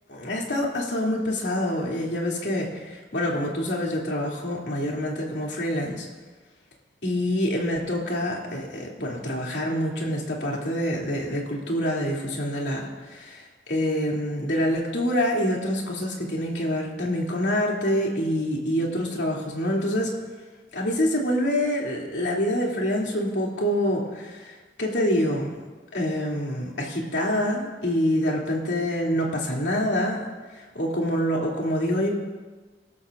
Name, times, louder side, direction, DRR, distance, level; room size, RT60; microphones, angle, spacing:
voice 1, 0.1-6.0 7.0-20.1 20.7-24.4 24.8-25.5 25.9-30.3 30.7-32.1, equal, 80° left, -3 dB, 3.0 m, -26 dB
27.0 x 12.5 x 2.6 m, 1.3 s
head